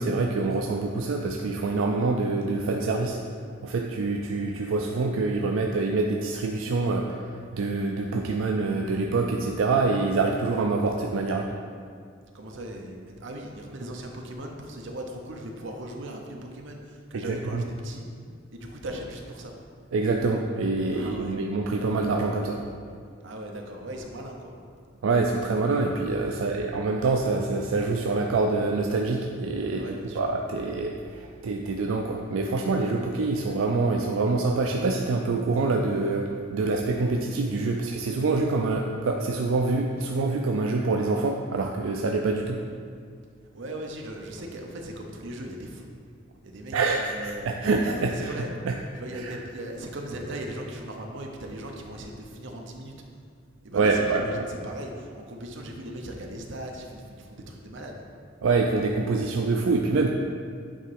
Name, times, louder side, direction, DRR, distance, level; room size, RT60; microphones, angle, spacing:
voice 1, 0.0-3.2 3.6-11.5 17.1-17.6 19.9-23.0 25.0-42.6 46.7-48.7 49.1-49.3 53.7-54.5 58.4-60.1, right 3 dB, 90° right, 1 dB, 0.4 m, -26 dB
voice 2, 12.3-18.1 18.5-19.5 20.9-21.4 23.2-24.5 26.2-26.6 29.7-30.2 43.5-45.9 46.4-47.5 47.9-48.5 49.0-52.9 53.6-58.0, right 1 dB, 65° right, 2 dB, 0.8 m, -38 dB
8.6 x 3.0 x 4.7 m, 2.1 s
head